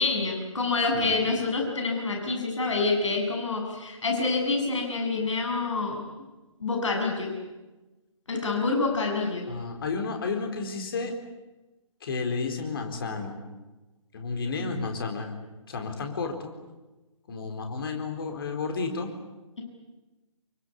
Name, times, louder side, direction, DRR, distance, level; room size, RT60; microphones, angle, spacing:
voice 1, 0.0-6.1 6.6-7.3 8.3-9.5, left 3 dB, 60° left, 1 dB, 7.6 m, -27 dB
voice 2, 9.5-11.1 12.0-13.4 14.1-15.3 15.7-16.5 17.3-19.1, left 4 dB, 45° left, 4 dB, 4.3 m, -32 dB
26.5 x 23.5 x 8.4 m, 1.1 s
figure-of-eight pair, 135°, 17 cm